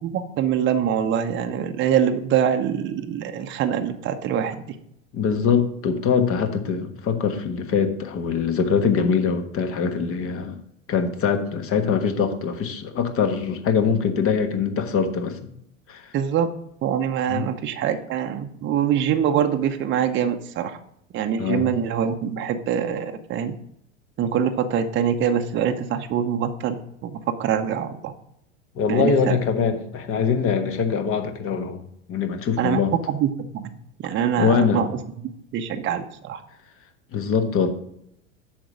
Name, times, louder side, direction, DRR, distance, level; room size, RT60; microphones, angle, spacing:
voice 1, 0.0-4.6 16.1-16.5 16.8-20.8 21.1-23.5 24.2-28.1 28.9-29.4 32.6-32.8 33.1-33.7 34.0-35.0 35.5-36.4, right 8 dB, 30° right, 6 dB, 0.8 m, -24 dB
voice 2, 5.1-10.6 10.9-15.4 15.9-16.1 17.3-17.4 21.4-21.7 28.8-31.8 32.1-32.9 34.4-34.8 37.1-37.7, left 6 dB, 35° left, 7 dB, 1.4 m, -23 dB
7.7 x 6.2 x 5.0 m, 0.74 s
figure-of-eight pair, 85°, 39 cm